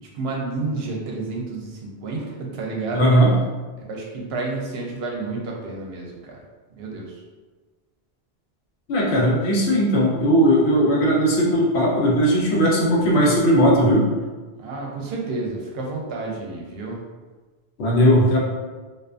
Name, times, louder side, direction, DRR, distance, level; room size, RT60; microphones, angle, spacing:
voice 1, 0.1-3.1 3.8-6.4 6.7-7.1 14.6-17.0, right 3 dB, 75° right, -1 dB, 0.8 m, -30 dB
voice 2, 2.9-3.3 8.9-14.1 17.8-18.4, equal, 80° left, -3 dB, 0.9 m, -18 dB
2.4 x 2.3 x 2.4 m, 1.3 s
omnidirectional pair, 1.1 m